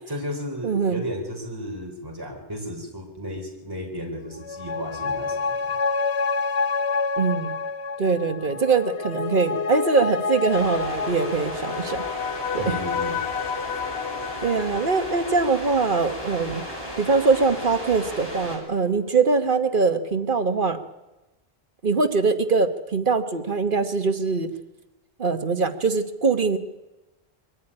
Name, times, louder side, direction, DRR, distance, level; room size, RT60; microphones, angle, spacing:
voice 1, 0.1-5.7 12.6-13.2, equal, 20° right, 1 dB, 3.7 m, -34 dB
voice 2, 0.6-1.0 7.2-7.5 8.0-12.0 12.5-12.8 14.4-16.6 17.0-20.8 21.8-24.5 25.2-26.6, right 4 dB, 55° right, 8 dB, 1.4 m, -22 dB
sound 1, 4.3-17.2 17.5-17.6, left 5 dB, 80° left, 1.2 m, -29 dB
sound 2, 10.5-18.6, equal, 20° left, 5.2 m, -35 dB
23.0 x 14.0 x 10.0 m, 1.0 s
omnidirectional pair, 1.1 m